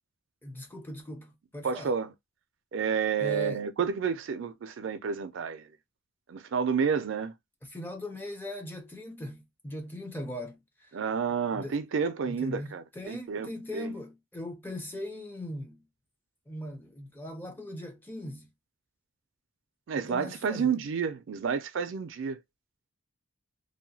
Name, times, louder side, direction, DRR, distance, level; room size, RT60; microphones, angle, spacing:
voice 1, 0.4-1.9 3.2-3.7 7.6-11.0 11.5-11.8 12.3-15.8 16.5-18.5 20.0-20.8, left 1 dB, 10° left, 0.5 m, -40 dB
voice 2, 1.6-2.1 2.7-5.7 6.3-7.3 10.9-13.9 19.9-22.4, right 6 dB, 60° right, 0.3 m, -30 dB
2.7 x 2.2 x 2.6 m
head